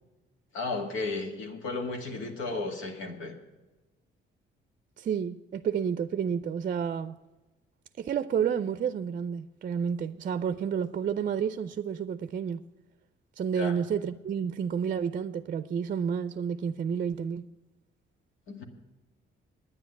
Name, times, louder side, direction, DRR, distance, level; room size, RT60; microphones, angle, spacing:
voice 1, 0.5-3.3 13.6-13.8 18.5-18.6, left 3 dB, 85° left, 2.0 m, -34 dB
voice 2, 5.0-7.2 8.0-12.6 13.4-17.5, right 7 dB, 45° right, 0.5 m, -30 dB
9.7 x 9.5 x 8.1 m
cardioid pair, 90°, 20 cm